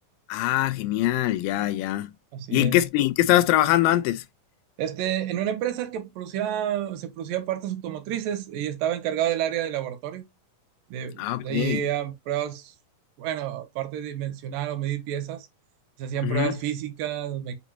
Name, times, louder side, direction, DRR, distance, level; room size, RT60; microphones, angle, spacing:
voice 1, 0.3-2.1 2.5-4.2 11.2-11.8 16.2-16.5, left 14 dB, 85° left, 2.3 m, -23 dB
voice 2, 2.3-2.8 4.8-10.2 10.9-12.7 13.2-15.5 16.0-17.6, right 11 dB, 85° right, 2.4 m, -29 dB
7.1 x 2.6 x 2.7 m
omnidirectional pair, 3.9 m